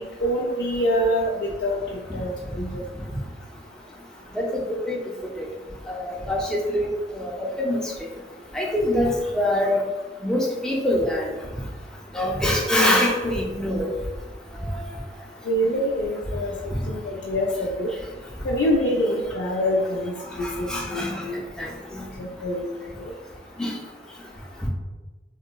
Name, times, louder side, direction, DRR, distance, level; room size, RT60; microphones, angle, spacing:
voice 1, 0.2-2.8 15.4-17.9 18.4-21.4 22.2-22.7 23.0-23.1, equal, 85° left, -4 dB, 0.4 m, -25 dB
voice 2, 5.9-8.1 8.5-9.8 10.2-11.3 12.1-13.9 20.4-21.3 21.6-22.0 23.6-23.7, left 1 dB, 5° left, -3 dB, 0.4 m, -24 dB
3.6 x 2.1 x 2.2 m, 1.2 s
head